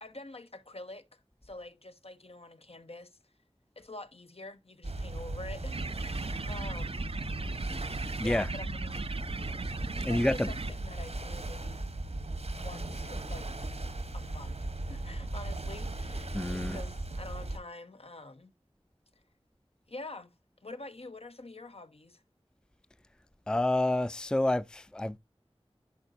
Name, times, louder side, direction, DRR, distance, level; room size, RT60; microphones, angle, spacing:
voice 1, 0.0-3.2 3.8-7.1 8.2-9.0 10.1-11.8 12.6-13.7 14.1-18.5 19.9-20.3 20.6-22.2, left 2 dB, 70° left, 0.9 m, -46 dB
sound 1, 4.8-17.6, right 2 dB, 85° right, 1.2 m, -37 dB
sound 2, 5.7-10.7, right 4 dB, 65° right, 0.4 m, -40 dB
voice 2, 10.0-10.5 16.3-16.8 23.5-25.2, left 1 dB, 5° left, 0.4 m, -28 dB
10.5 x 5.0 x 2.6 m
wide cardioid pair, 40°, 11 cm